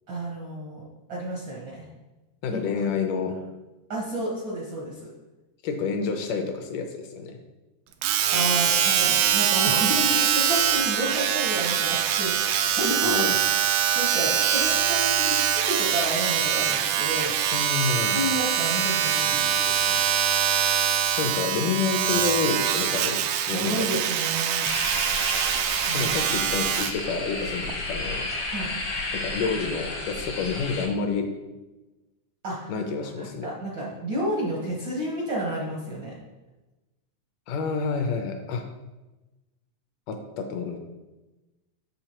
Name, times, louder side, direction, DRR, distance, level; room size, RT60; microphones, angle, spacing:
voice 1, 0.1-1.9 2.5-2.9 3.9-5.1 8.3-17.3 18.1-20.1 23.5-24.7 25.9-26.1 28.4-28.7 32.4-36.1, right 1 dB, 70° right, -4 dB, 1.1 m, -31 dB
voice 2, 2.4-3.4 5.6-7.3 13.0-13.4 17.5-18.3 21.2-24.0 25.9-28.3 29.1-31.3 32.7-33.5 37.5-38.6 40.1-40.8, left 5 dB, 75° left, 5 dB, 2.2 m, -29 dB
Domestic sounds home sounds, 8.0-27.0 27.7-27.8, right 9 dB, 90° right, 2.3 m, -24 dB
sound 1, 24.6-30.9, left 2 dB, 60° left, 1.1 m, -32 dB
8.0 x 6.8 x 2.9 m, 1.1 s
omnidirectional pair, 3.9 m